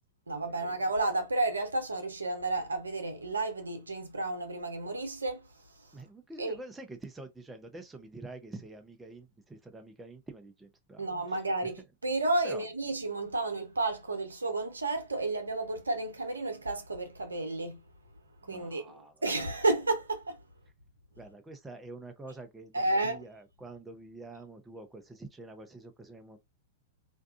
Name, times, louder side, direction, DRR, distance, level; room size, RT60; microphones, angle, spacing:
voice 1, 0.3-5.9 6.4-6.6 11.0-17.8 18.5-20.4 22.7-23.2, right 2 dB, 90° right, 0.7 m, -32 dB
voice 2, 5.9-11.7 12.4-12.6 18.4-19.2 21.2-26.4, right 2 dB, 10° right, 0.5 m, -47 dB
2.6 x 2.3 x 2.4 m
hypercardioid pair, 105°, 0 cm